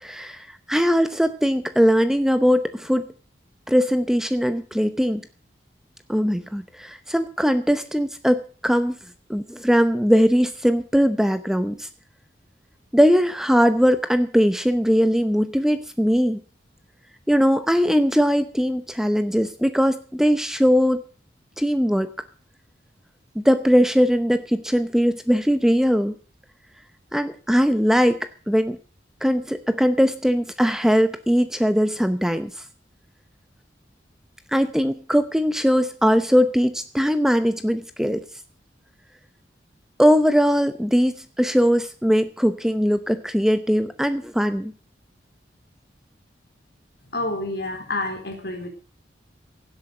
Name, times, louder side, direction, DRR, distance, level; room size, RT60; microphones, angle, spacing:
voice 1, 0.0-3.1 3.7-5.2 6.1-8.9 9.3-11.9 12.9-16.4 17.3-21.0 21.6-22.1 23.4-26.1 27.1-28.8 29.2-32.5 34.5-38.2 40.0-44.7, equal, 5° right, 10 dB, 0.8 m, -20 dB
voice 2, 47.1-48.7, left 2 dB, 60° left, 5 dB, 4.0 m, -28 dB
17.0 x 8.0 x 7.7 m, 0.40 s
head